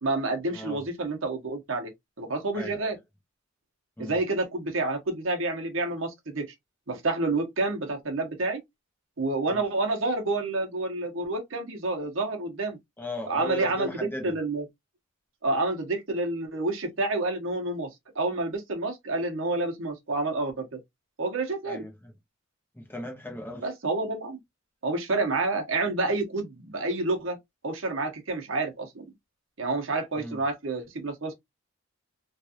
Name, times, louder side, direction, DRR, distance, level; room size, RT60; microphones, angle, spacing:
voice 1, 0.0-1.9 2.2-3.0 4.0-6.5 6.9-8.6 9.2-12.8 13.3-14.6 15.4-17.9 18.1-20.8 21.2-21.9 23.6-24.4 24.8-27.4 27.6-29.0 29.6-31.3, right 2 dB, 75° right, 1.0 m, -29 dB
voice 2, 0.5-0.9 2.5-2.9 4.0-4.2 9.5-9.6 13.0-14.4 21.7-22.1 22.7-23.6 30.2-30.4, left 1 dB, 10° left, 0.8 m, -37 dB
3.2 x 2.5 x 2.8 m
head